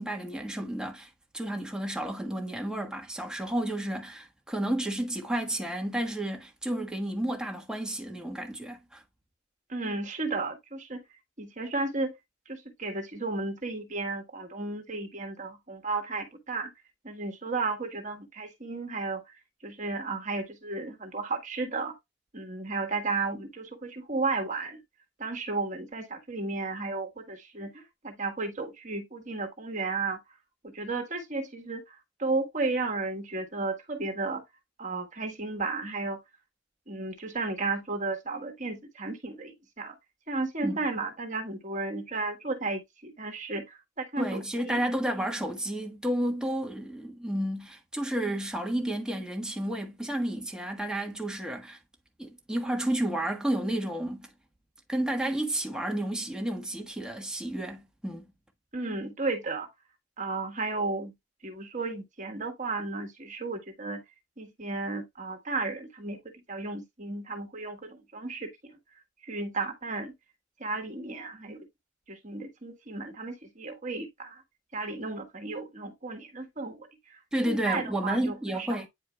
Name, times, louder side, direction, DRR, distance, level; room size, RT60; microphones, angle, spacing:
voice 1, 0.0-9.0 40.6-40.8 44.2-51.8 52.2-54.3 54.9-58.3 77.3-78.9, right 1 dB, 5° right, 1.4 m, -31 dB
voice 2, 9.7-11.0 11.4-12.1 12.5-16.7 17.0-19.2 19.6-21.9 22.3-24.8 25.2-30.2 30.6-34.4 34.8-36.2 36.9-39.9 40.3-44.8 58.7-59.7 60.2-61.1 61.4-64.0 64.4-66.2 66.5-68.5 69.2-70.1 70.6-71.7 72.1-74.4 74.7-76.9 77.4-78.7, right 3 dB, 40° right, 1.6 m, -33 dB
9.4 x 4.7 x 2.3 m
head